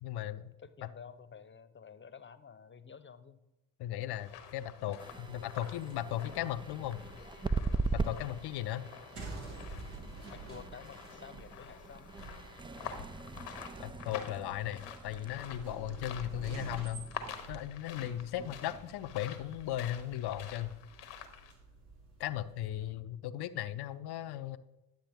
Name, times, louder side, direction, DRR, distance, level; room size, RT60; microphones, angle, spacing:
voice 1, 0.0-0.5 3.8-7.0 7.9-8.9 13.8-17.0 17.5-20.7 22.2-24.6, left 12 dB, 55° left, 13 dB, 0.7 m, -37 dB
voice 2, 0.6-3.4 10.3-12.1, left 6 dB, 25° left, 13 dB, 0.8 m, -51 dB
sound 1, 4.1-21.5, left 8 dB, 85° left, 1.0 m, -49 dB
sound 2, 5.0-15.7, right 4 dB, 10° right, 0.4 m, -40 dB
sound 3, 9.1-22.9, right 3 dB, 65° right, 2.2 m, -49 dB
10.5 x 7.3 x 3.6 m, 0.95 s
hypercardioid pair, 50°, 46 cm